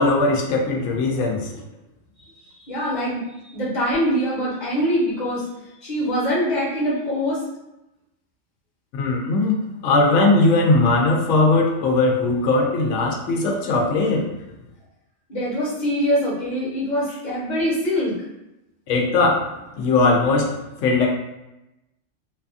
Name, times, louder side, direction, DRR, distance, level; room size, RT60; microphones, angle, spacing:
voice 1, 0.0-1.6 8.9-9.5 9.8-14.3 18.9-19.5 19.8-21.1, left 2 dB, 75° left, 0 dB, 0.9 m, -19 dB
voice 2, 2.5-5.4 5.8-7.4 15.3-18.1, equal, 40° left, -6 dB, 1.0 m, -23 dB
2.6 x 2.3 x 2.4 m, 0.92 s
omnidirectional pair, 1.3 m